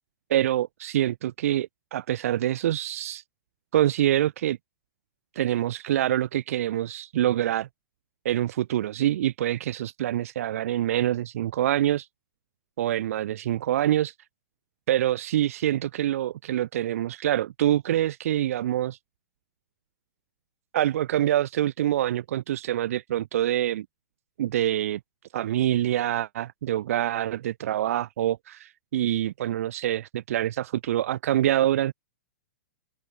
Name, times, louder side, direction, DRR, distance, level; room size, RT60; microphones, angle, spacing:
voice 1, 0.3-3.2 3.7-4.6 5.4-7.7 8.2-12.1 12.8-14.1 14.9-19.0 20.7-23.9 24.4-25.0 25.3-31.9, right 12 dB, 60° right, 4.2 m, -25 dB
hypercardioid pair, 120°, 9 cm